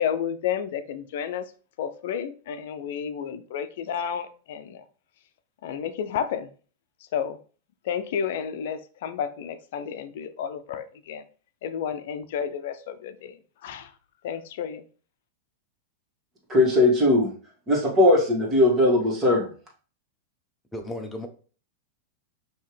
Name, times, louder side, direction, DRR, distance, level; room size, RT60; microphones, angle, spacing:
voice 1, 0.0-1.4 1.8-4.8 5.6-6.5 7.1-7.4 7.8-11.2 11.6-13.4 13.6-13.9 14.2-14.8, left 8 dB, 65° left, 11 dB, 0.5 m, -31 dB
voice 2, 16.5-17.3 17.7-19.5, left 1 dB, 25° right, -2 dB, 1.9 m, -19 dB
voice 3, 20.7-21.3, left 1 dB, 5° left, 3 dB, 0.8 m, -34 dB
5.4 x 2.9 x 3.3 m, 0.39 s
hypercardioid pair, 115°, 0 cm